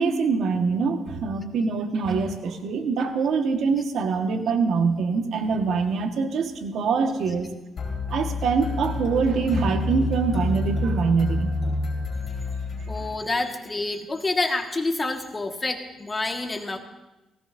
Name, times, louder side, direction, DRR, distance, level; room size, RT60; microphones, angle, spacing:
voice 1, 0.0-7.5 8.1-11.5, right 5 dB, 70° right, 5 dB, 1.4 m, -24 dB
sound 1, 7.8-13.4, left 2 dB, 50° left, 4.4 m, -28 dB
voice 2, 12.9-16.8, left 2 dB, 25° left, 4 dB, 1.6 m, -28 dB
18.0 x 17.0 x 2.6 m, 1.0 s
cardioid pair, 90°, 0 cm